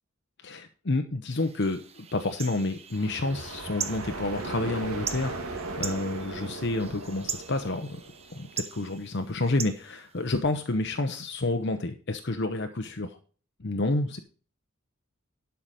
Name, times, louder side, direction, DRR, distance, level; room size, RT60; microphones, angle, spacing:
voice 1, 0.4-8.0 8.3-13.2 13.6-14.2, left 2 dB, 55° left, 6 dB, 0.8 m, -29 dB
sound 1, 1.3-10.7, right 7 dB, 30° right, 0.9 m, -41 dB
sound 2, 2.9-8.7, right 3 dB, 90° right, 2.1 m, -38 dB
11.5 x 5.8 x 5.0 m, 0.39 s
head